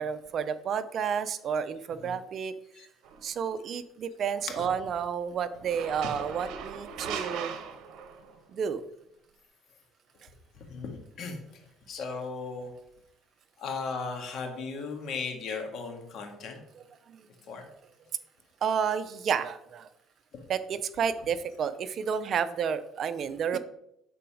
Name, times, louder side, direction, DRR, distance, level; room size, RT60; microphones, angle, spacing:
voice 1, 0.0-2.5 3.2-7.6 8.5-8.8 17.1-17.3 18.6-19.9 20.5-23.6, right 7 dB, 50° right, 13 dB, 0.6 m, -31 dB
sound 1, 3.0-3.3 5.6-8.4, right 7 dB, 75° right, 1.0 m, -38 dB
voice 2, 10.7-11.4 11.9-12.7 13.6-16.6 17.5-17.6 20.3-20.4, left 4 dB, 60° left, 4 dB, 1.8 m, -36 dB
10.0 x 3.9 x 5.0 m, 0.79 s
cardioid pair, 105°, 0 cm